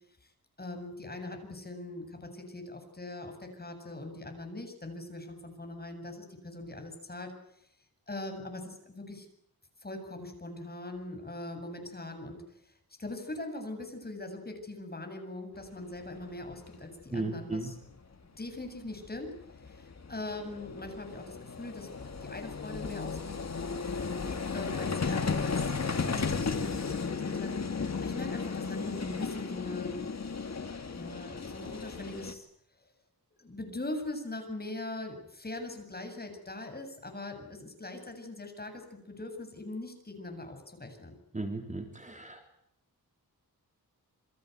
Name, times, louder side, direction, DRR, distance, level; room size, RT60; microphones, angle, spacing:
voice 1, 0.6-7.3 8.1-9.3 9.8-12.7 13.0-17.8 18.4-19.3 19.6-23.4 24.5-30.1 30.9-32.5 33.4-41.2, left 2 dB, 25° left, 5 dB, 8.0 m, -41 dB
Vehicle, 16.2-16.3 16.5-16.7 18.7-18.8 19.0-32.3, left 5 dB, 45° left, 2.8 m, -34 dB
voice 2, 17.1-17.7 41.3-42.4, right 2 dB, 20° right, 4 dB, 3.5 m, -35 dB
28.5 x 25.0 x 8.2 m, 0.72 s
wide cardioid pair, 145°, 37 cm